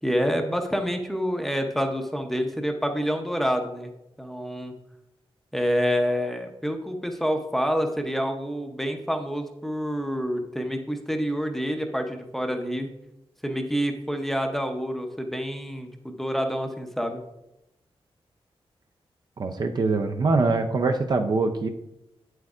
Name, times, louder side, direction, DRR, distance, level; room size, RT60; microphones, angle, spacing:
voice 1, 0.0-3.9 4.2-4.7 5.5-12.9 13.4-17.2, equal, 5° left, 4 dB, 0.6 m, -27 dB
voice 2, 19.4-21.7, right 3 dB, 45° right, 5 dB, 0.5 m, -23 dB
8.6 x 7.8 x 2.4 m, 0.88 s
wide cardioid pair, 170°, 10 cm